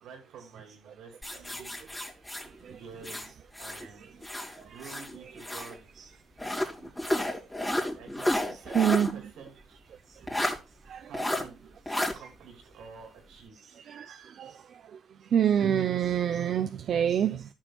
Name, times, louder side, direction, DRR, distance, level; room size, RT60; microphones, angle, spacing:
voice 1, 0.0-1.7 2.7-3.3 3.6-4.2 4.6-5.9 7.9-9.8 10.9-11.6 12.0-13.8, right 5 dB, 85° right, 3.2 m, -49 dB
sound 1, 1.2-3.9 4.2-5.8 6.4-9.1 9.5-9.6 10.3-10.6 11.1-11.4 11.9-12.1, left 1 dB, 10° left, 3.1 m, -31 dB
voice 2, 8.7-9.1 10.9-11.1 13.8-14.5 15.3-17.5, right 9 dB, 60° right, 0.7 m, -26 dB
13.5 x 6.5 x 2.4 m
cardioid pair, 90°, 0 cm